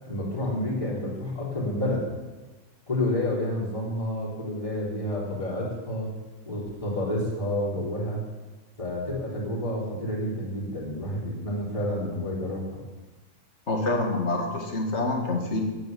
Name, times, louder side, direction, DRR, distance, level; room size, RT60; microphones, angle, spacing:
voice 1, 0.0-2.1 2.9-6.1 6.5-8.2 8.8-12.8, left 1 dB, 20° left, -6 dB, 3.9 m, -29 dB
voice 2, 13.7-15.6, left 2 dB, 45° left, 2 dB, 2.4 m, -26 dB
9.2 x 8.7 x 9.5 m, 1.2 s
omnidirectional pair, 1.6 m